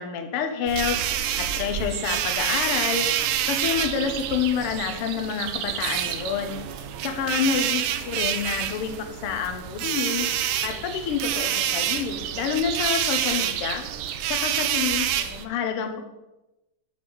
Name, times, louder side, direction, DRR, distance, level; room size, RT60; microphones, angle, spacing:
voice 1, 0.0-6.6 7.0-13.8 14.3-16.0, left 7 dB, 80° left, 6 dB, 1.3 m, -28 dB
sound 1, 0.7-15.4, right 10 dB, 80° right, 1.9 m, -28 dB
6.3 x 4.2 x 6.1 m, 0.98 s
omnidirectional pair, 3.4 m